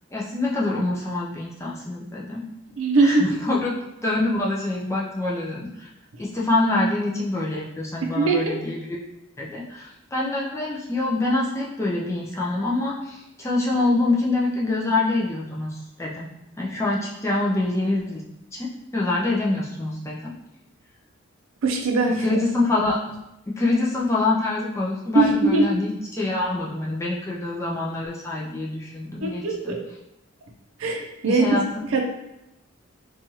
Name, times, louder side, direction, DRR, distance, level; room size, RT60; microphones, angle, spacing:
voice 1, 0.1-2.4 3.0-3.7 4.0-5.9 6.2-9.0 9.4-16.3 16.6-18.2 18.5-20.3 22.2-23.0 23.6-29.7 31.3-31.6, left 2 dB, 15° left, -5 dB, 0.4 m, -25 dB
voice 2, 2.8-3.3 8.1-8.5 21.6-22.4 25.1-25.8 29.2-29.8 30.8-32.0, right 3 dB, 75° right, 2 dB, 0.5 m, -21 dB
3.0 x 2.3 x 2.7 m, 0.88 s
head